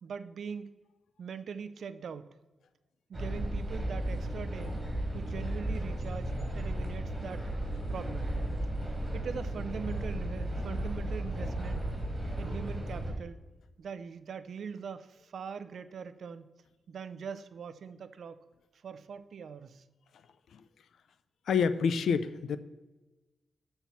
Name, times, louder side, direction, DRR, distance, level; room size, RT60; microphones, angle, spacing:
voice 1, 0.0-0.7 1.2-2.3 3.1-4.7 5.1-7.5 7.9-8.3 9.1-11.8 12.4-13.4 13.8-16.5 16.9-18.4 18.7-19.8, right 6 dB, 70° right, 12 dB, 0.5 m, -41 dB
sound 1, 3.1-13.1, right 1 dB, 20° right, 2.7 m, -34 dB
voice 2, 21.5-22.6, left 6 dB, 85° left, 13 dB, 0.4 m, -28 dB
7.2 x 4.5 x 6.9 m, 1.1 s
cardioid pair, 85°, 0 cm